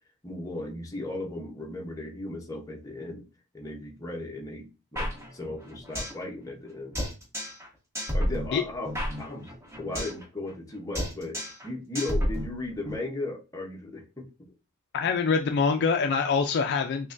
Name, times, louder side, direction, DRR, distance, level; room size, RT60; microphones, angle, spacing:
voice 1, 0.2-3.2 3.5-7.0 8.1-9.5 9.8-14.3 16.0-16.1, left 2 dB, 15° left, 0 dB, 0.7 m, -36 dB
sound 1, 5.0-6.2 6.5-6.6 7.0-7.7 8.0-10.2 10.5-10.7 11.0-11.7 12.0-13.0, equal, 10° right, 1.2 m, -31 dB
voice 2, 14.9-17.1, left 5 dB, 50° left, 5 dB, 0.3 m, -25 dB
6.1 x 2.1 x 2.5 m, 0.30 s
head